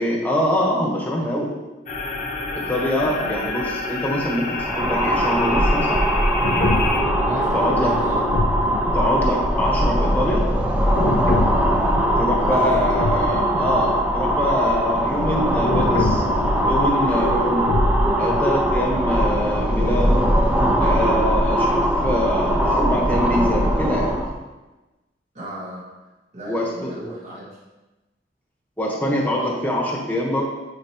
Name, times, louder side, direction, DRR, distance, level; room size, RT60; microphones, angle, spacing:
voice 1, 0.0-1.5 2.5-6.0 7.5-7.9 8.9-10.4 12.2-16.2 16.7-17.7 18.2-20.2 20.8-24.1 26.5-26.9 28.8-30.4, equal, 10° left, -3 dB, 1.3 m, -24 dB
sound 1, 1.9-7.0, left 3 dB, 45° left, 0.9 m, -28 dB
voice 2, 3.0-3.4 7.2-8.2 12.4-13.2 25.3-25.8 26.3-27.5, equal, 40° right, -6 dB, 1.4 m, -33 dB
sound 2, 4.5-24.3, equal, 10° right, 0.7 m, -21 dB
sound 3, 6.4-9.7 10.8-14.0 14.3-14.4 15.5-18.5, left 2 dB, 70° left, 0.5 m, -26 dB
9.1 x 4.4 x 3.0 m, 1.1 s
head